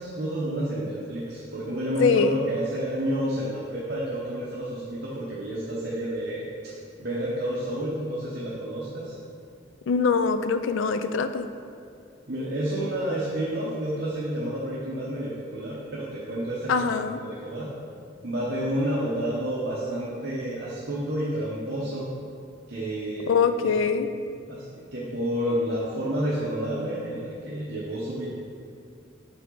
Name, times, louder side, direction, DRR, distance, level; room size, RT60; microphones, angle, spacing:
voice 1, 0.0-6.7 7.0-9.2 12.3-16.8 17.2-17.7 18.2-22.1 22.7-23.3 23.6-23.7 24.5-24.7 24.9-28.3, right 1 dB, 55° right, -7 dB, 0.9 m, -30 dB
voice 2, 2.0-2.4 9.9-11.5 16.7-17.2 23.3-24.1, left 5 dB, 85° left, 10 dB, 0.4 m, -23 dB
6.6 x 5.5 x 3.8 m, 2.3 s
head